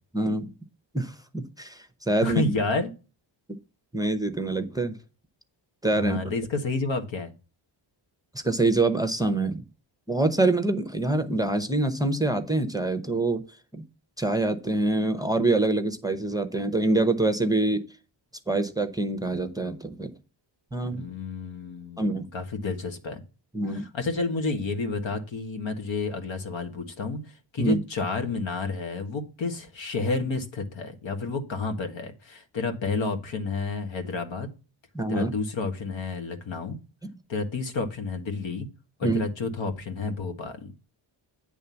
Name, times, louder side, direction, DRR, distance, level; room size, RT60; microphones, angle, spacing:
voice 1, 0.1-0.5 0.9-2.5 3.9-4.9 5.8-6.2 8.4-9.6 10.1-13.4 13.7-13.8 14.2-17.8 18.5-20.1 20.7-21.0 22.0-22.3 23.5-23.9 27.6-27.8 34.9-35.3 39.0-39.2, right 2 dB, 10° right, 8 dB, 0.8 m, -25 dB
voice 2, 2.2-2.9 5.9-7.3 20.8-23.2 23.7-34.5 35.1-36.8 37.3-38.7 39.0-40.7, left 3 dB, 75° left, 6 dB, 1.7 m, -30 dB
9.3 x 3.5 x 7.0 m, 0.33 s
wide cardioid pair, 120°, 46 cm